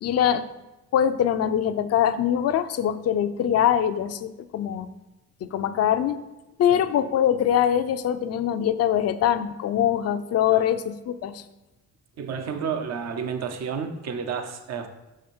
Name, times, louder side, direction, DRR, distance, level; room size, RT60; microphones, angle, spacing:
voice 1, 0.0-0.5 0.9-4.9 5.4-6.2 6.6-11.4, left 10 dB, 55° left, 10 dB, 0.5 m, -23 dB
voice 2, 12.2-14.9, right 6 dB, 60° right, 7 dB, 0.8 m, -31 dB
6.3 x 5.0 x 4.3 m, 1.0 s
cardioid pair, 90°, 30 cm